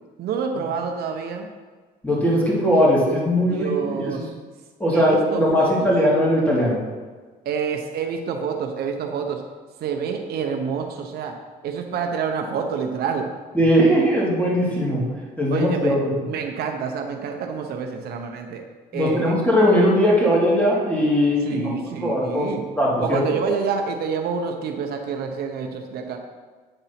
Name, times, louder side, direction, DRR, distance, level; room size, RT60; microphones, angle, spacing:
voice 1, 0.2-1.5 3.4-4.3 4.9-5.9 7.4-9.4 9.8-11.4 11.6-13.3 15.5-16.0 16.3-18.6 18.9-19.4 21.4-22.7 23.0-26.2, right 6 dB, 70° right, 3 dB, 0.8 m, -28 dB
voice 2, 2.0-4.3 4.8-6.8 13.5-15.0 15.4-16.1 18.9-21.6 22.0-23.2, equal, 10° left, -5 dB, 2.6 m, -19 dB
9.0 x 4.0 x 5.8 m, 1.5 s
cardioid pair, 110°, 17 cm